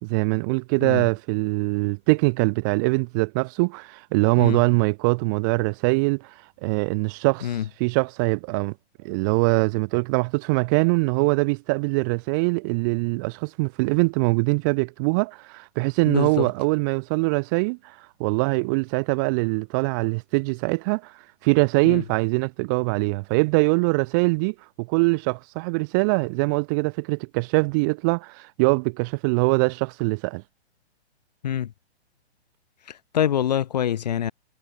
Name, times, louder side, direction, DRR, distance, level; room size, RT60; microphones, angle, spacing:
voice 1, 0.0-6.3 6.6-8.7 9.0-17.9 18.2-21.1 21.4-30.4, right 30 dB, 15° right, 1.9 m, -23 dB
voice 2, 16.1-16.5 21.8-22.0 31.4-31.7 32.9-34.3, left 10 dB, 40° left, 1.5 m, -25 dB
hypercardioid pair, 180°, 34 cm